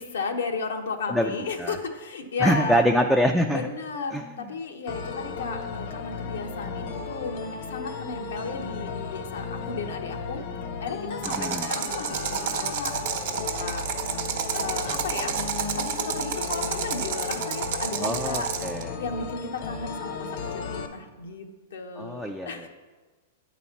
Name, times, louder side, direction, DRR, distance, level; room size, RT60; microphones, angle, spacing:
voice 1, 0.0-2.8 3.5-10.4 10.8-13.2 13.5-13.8 14.5-15.4 15.7-18.5 19.0-22.7, left 4 dB, 85° left, 4 dB, 0.8 m, -34 dB
voice 2, 2.4-3.6 4.1-4.2 11.2-11.7 18.0-18.9 22.0-22.7, equal, ahead, 2 dB, 0.3 m, -24 dB
sound 1, 4.9-20.9, left 5 dB, 50° left, 0.7 m, -35 dB
sound 2, 11.2-18.8, right 7 dB, 60° right, 0.9 m, -30 dB
8.9 x 4.1 x 5.7 m, 1.4 s
hypercardioid pair, 145°, 0 cm